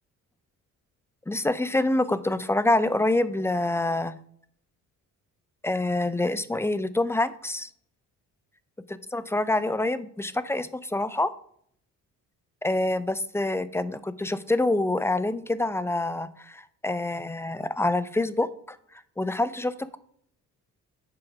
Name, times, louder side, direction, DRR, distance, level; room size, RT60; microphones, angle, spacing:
voice 1, 1.3-4.1 5.6-7.7 8.9-11.3 12.6-18.8 19.2-20.0, left 2 dB, 10° left, 14 dB, 0.4 m, -26 dB
7.9 x 3.8 x 5.8 m, 0.64 s
cardioid pair, 105°, 32 cm